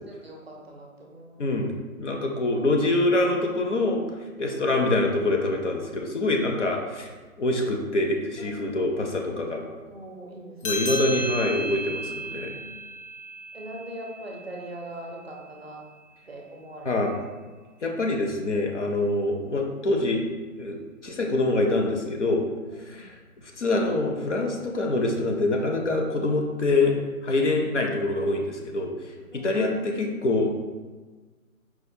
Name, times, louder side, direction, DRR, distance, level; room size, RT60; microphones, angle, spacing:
voice 1, 0.2-1.4 4.5-4.9 8.4-8.8 9.8-10.9 12.3-12.7 13.5-15.9 16.3-17.2 22.7-23.0 29.3-29.6, right 1 dB, 45° right, -1 dB, 0.5 m, -42 dB
voice 2, 1.4-4.0 4.4-7.1 7.4-9.6 10.6-12.6 16.9-17.1 17.8-20.2 20.6-22.5 22.9-27.0 27.2-29.1 29.4-30.5, left 2 dB, 55° left, 2 dB, 0.5 m, -25 dB
sound 1, 10.6-15.5, equal, 90° left, 0.8 m, -34 dB
4.5 x 2.1 x 2.6 m, 1.4 s
hypercardioid pair, 170°, 43 cm